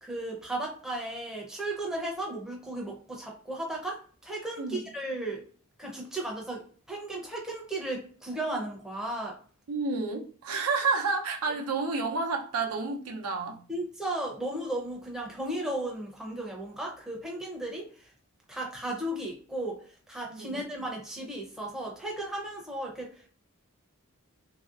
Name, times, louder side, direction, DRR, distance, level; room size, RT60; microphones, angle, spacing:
voice 1, 0.0-5.4 5.8-9.4 13.7-18.1 18.5-23.3, right 1 dB, 5° right, -2 dB, 0.6 m, -35 dB
voice 2, 9.7-13.6 20.3-20.6, right 4 dB, 85° right, 2 dB, 0.6 m, -30 dB
3.2 x 2.7 x 2.3 m, 0.43 s
head